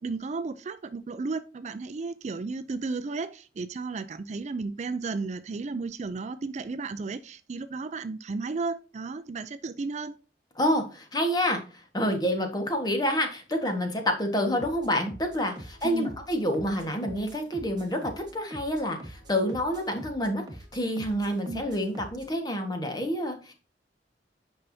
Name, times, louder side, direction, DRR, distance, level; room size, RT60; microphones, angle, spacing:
voice 1, 0.0-10.2 15.8-16.1 21.5-21.6, right 4 dB, 40° right, 0.4 m, -34 dB
voice 2, 10.6-20.5 20.7-23.5, equal, 25° left, 1.4 m, -28 dB
sound 1, 14.6-22.3, right 1 dB, 25° right, 1.5 m, -46 dB
8.8 x 5.5 x 2.7 m
head